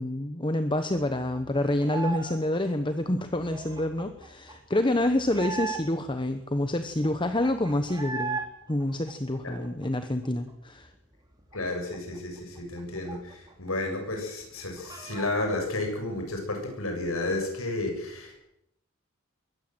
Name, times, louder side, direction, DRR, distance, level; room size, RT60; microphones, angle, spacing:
voice 1, 0.0-8.4 8.7-10.9, left 1 dB, 25° left, 8 dB, 1.1 m, -27 dB
sound 1, 0.7-2.4 2.6-6.1 6.6-6.7 6.8-8.5 8.8-10.5 10.8-10.9 11.2-13.7 14.0-14.1 14.4-15.6, right 4 dB, 20° right, 3.5 m, -38 dB
voice 2, 11.5-18.4, left 2 dB, 85° left, 4 dB, 7.4 m, -32 dB
22.5 x 17.0 x 7.8 m, 0.80 s
head